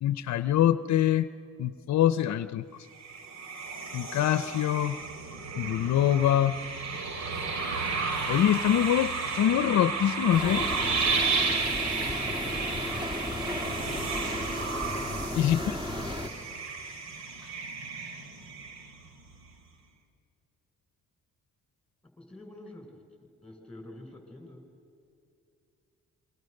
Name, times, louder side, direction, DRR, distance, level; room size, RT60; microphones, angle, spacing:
voice 1, 0.0-1.3 1.6-2.6 3.9-5.0 5.6-6.5 8.3-10.7 15.4-15.8, left 11 dB, 65° left, 14 dB, 0.7 m, -24 dB
sound 1, 2.9-19.2, right 4 dB, 60° right, 2.9 m, -33 dB
sound 2, 10.3-16.3, left 1 dB, 15° right, 2.7 m, -34 dB
voice 2, 12.1-12.4 15.9-16.2 22.2-23.0 23.4-24.7, left 1 dB, 5° left, 4 dB, 6.0 m, -47 dB
28.0 x 24.0 x 6.6 m, 2.7 s
cardioid pair, 90°, 30 cm